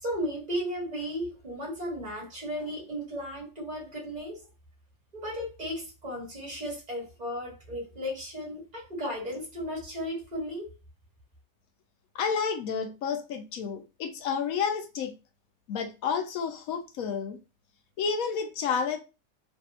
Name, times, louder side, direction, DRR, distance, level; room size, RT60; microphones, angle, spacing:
voice 1, 0.0-4.4 5.1-10.7, equal, 25° right, 1.7 m, -35 dB
voice 2, 12.1-15.1 15.7-17.4 18.0-19.0, left 6 dB, 70° left, 0.9 m, -30 dB
3.3 x 2.6 x 2.8 m
omnidirectional pair, 1.6 m